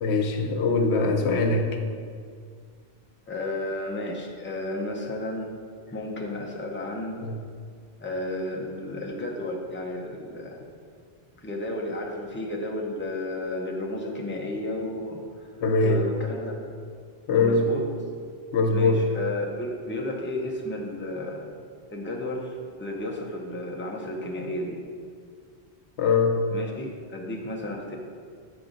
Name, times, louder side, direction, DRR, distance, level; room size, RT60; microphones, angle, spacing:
voice 1, 0.0-1.8 7.2-7.4 15.6-16.1 17.3-17.7 18.5-19.0 26.0-26.4, left 3 dB, 85° left, 5 dB, 0.9 m, -22 dB
voice 2, 3.3-5.5 5.9-7.2 8.0-10.6 11.4-15.2 15.8-16.6 17.4-17.8 18.7-21.5 21.9-24.8 26.5-28.0, left 1 dB, 10° left, -1 dB, 0.7 m, -32 dB
8.5 x 4.9 x 3.9 m, 2.1 s
omnidirectional pair, 1.1 m